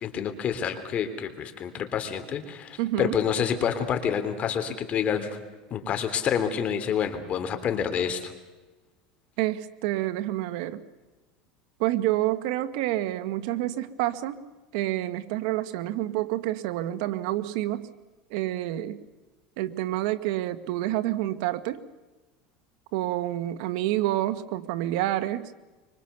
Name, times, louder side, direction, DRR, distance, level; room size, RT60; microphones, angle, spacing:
voice 1, 0.0-5.4 5.7-8.3, left 8 dB, 35° left, 8 dB, 3.3 m, -28 dB
voice 2, 2.8-3.2 9.4-10.8 11.8-14.4 14.7-17.9 18.3-19.0 19.6-21.8 22.9-25.5, right 15 dB, 75° right, 11 dB, 1.7 m, -28 dB
25.0 x 25.0 x 7.0 m, 1.2 s
supercardioid pair, 130°, 4 cm